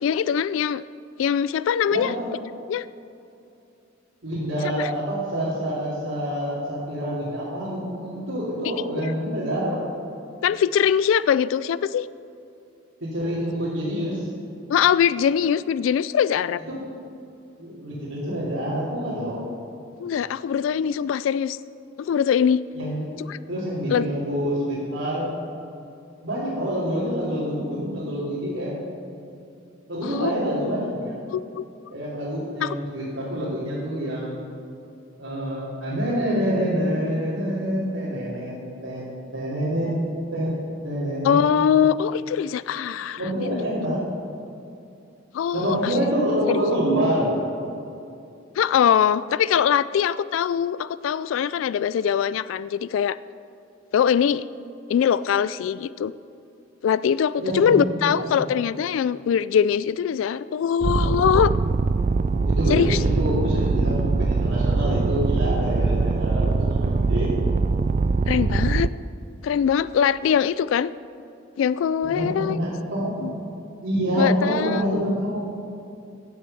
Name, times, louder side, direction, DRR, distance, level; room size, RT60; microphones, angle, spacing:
voice 1, 0.0-0.8 1.2-2.1 2.7-2.9 4.8-4.9 10.4-12.1 14.7-16.6 20.0-21.6 22.0-22.6 23.3-23.4 23.9-24.1 30.0-30.3 31.3-31.6 32.6-32.8 41.2-43.6 45.3-46.0 46.5-46.6 48.6-53.2 53.9-54.4 54.9-56.1 56.8-61.5 62.7-63.0 68.3-68.9 69.4-70.9 71.6-72.6 73.2-73.3 74.2-75.0, left 8 dB, 85° left, 18 dB, 0.3 m, -22 dB
voice 2, 1.9-2.3 4.2-9.8 13.0-14.3 16.7-16.8 17.6-19.4 22.7-23.1 23.5-25.3 26.2-28.8 29.9-31.2 31.9-34.4 35.2-38.5 38.8-39.0 39.3-40.0 40.3-40.5 40.8-41.4 43.1-44.0 45.5-47.4 57.4-58.4 62.4-67.3 72.1-73.3 73.8-75.4, equal, 85° right, -9 dB, 3.2 m, -26 dB
sound 1, 60.8-68.9, right 4 dB, 40° right, 0.3 m, -22 dB
16.0 x 7.7 x 5.6 m, 2.7 s
head